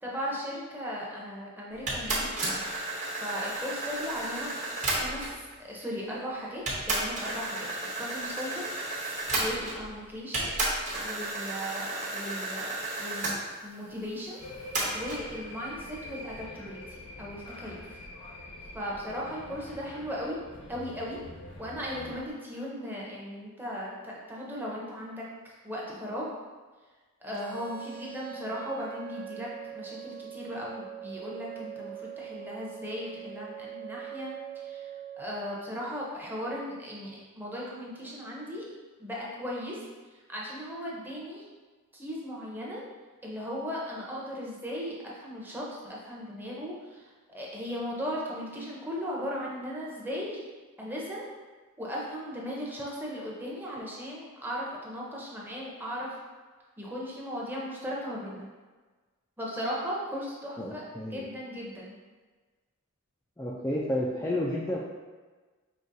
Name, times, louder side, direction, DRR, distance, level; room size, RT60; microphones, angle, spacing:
voice 1, 0.0-2.4 3.2-4.5 4.8-8.7 9.4-10.5 11.0-14.4 14.9-18.0 18.7-20.4 20.7-21.2 21.6-26.3 27.2-29.5 29.7-34.9 35.2-38.7 39.0-39.8 40.3-41.4 41.9-42.8 43.2-50.4 50.8-51.3 51.8-56.1 56.8-58.5 59.4-60.8 61.1-61.9, equal, 10° right, -5 dB, 0.7 m, -37 dB
sound 1, 1.9-5.4 6.2-6.3 6.7-9.9 10.3-13.4 14.7-15.2, right 2 dB, 35° right, 0.9 m, -32 dB
sound 2, 14.4-22.3, left 2 dB, 85° left, 1.0 m, -45 dB
sound 3, 27.3-35.3, right 11 dB, 55° right, 0.6 m, -43 dB
voice 2, 60.6-61.2 63.4-64.8, left 1 dB, 10° left, -5 dB, 0.3 m, -31 dB
5.2 x 2.9 x 2.7 m, 1.3 s
head